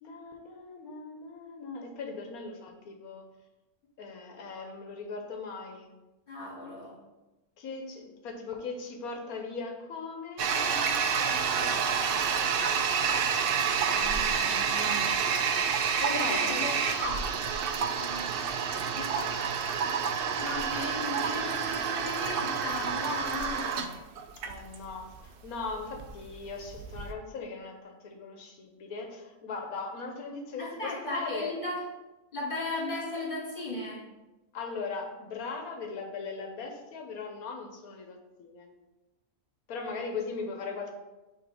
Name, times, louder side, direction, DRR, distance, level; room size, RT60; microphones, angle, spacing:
voice 1, 0.0-3.3 4.0-5.9 7.6-12.8 15.7-16.7 18.9-19.4 24.4-31.6 34.5-38.7 39.7-40.9, left 4 dB, 80° left, 3 dB, 1.3 m, -39 dB
voice 2, 6.3-7.0 13.9-15.2 16.1-17.4 17.8-18.3 20.4-23.8 30.6-31.8 32.3-34.0, left 2 dB, 35° left, -5 dB, 2.0 m, -36 dB
Toilet flush, 10.4-27.1, right 6 dB, 90° right, 0.4 m, -29 dB
6.0 x 3.3 x 4.9 m, 1.1 s
omnidirectional pair, 1.5 m